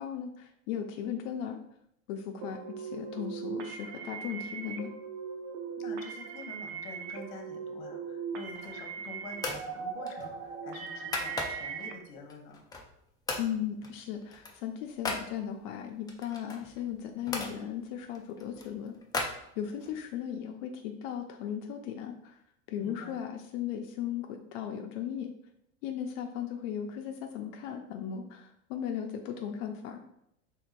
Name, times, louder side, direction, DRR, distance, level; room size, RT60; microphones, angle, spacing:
voice 1, 0.0-1.6 2.1-4.9 13.4-18.9 19.3-22.4 22.7-25.3 25.8-30.0, left 9 dB, 65° left, 4 dB, 0.5 m, -37 dB
sound 1, 2.4-11.9, right 6 dB, 50° right, 0.6 m, -39 dB
voice 2, 5.8-12.6 22.8-23.2, left 3 dB, 50° left, 3 dB, 0.9 m, -47 dB
sound 2, 8.4-8.9 9.4-9.7 10.1-11.8 12.3-13.0 13.3-13.5 13.8-15.3 16.1-17.5 18.1-20.0, left 3 dB, 10° left, 0.3 m, -37 dB
4.4 x 3.5 x 2.5 m, 0.77 s
hypercardioid pair, 100°, 42 cm